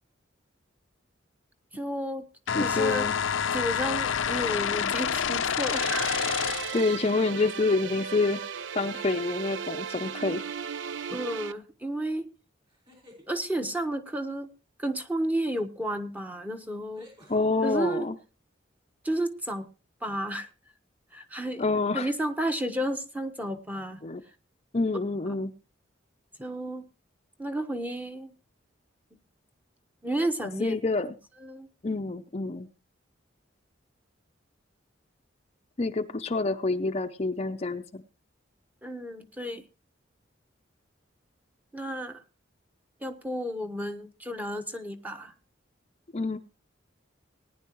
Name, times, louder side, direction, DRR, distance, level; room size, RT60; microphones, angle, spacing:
voice 1, 1.7-2.2 2.6-3.1 3.5-6.3 11.1-12.3 13.3-14.5 14.8-17.1 17.6-18.1 19.0-19.7 20.0-20.5 21.1-21.6 21.9-24.0 26.4-26.8 27.4-28.3 30.0-30.8 31.4-31.7 38.8-39.6 41.7-42.2 43.0-45.3, right 1 dB, 10° right, 7 dB, 1.0 m, -32 dB
sound 1, 2.5-6.9, left 7 dB, 80° left, 0.6 m, -28 dB
voice 2, 2.5-3.1 6.7-8.5 8.8-10.4 17.3-18.2 21.6-22.1 24.0-24.2 24.7-25.5 30.6-31.2 31.8-32.7 35.8-38.0 46.1-46.4, left 3 dB, 35° left, 7 dB, 0.6 m, -27 dB
sound 2, 5.6-11.5, right 7 dB, 70° right, 0.5 m, -36 dB
sound 3, 12.6-13.3 15.6-15.7 16.9-17.5, equal, 25° right, 5.2 m, -53 dB
19.0 x 10.0 x 3.0 m, 0.32 s
head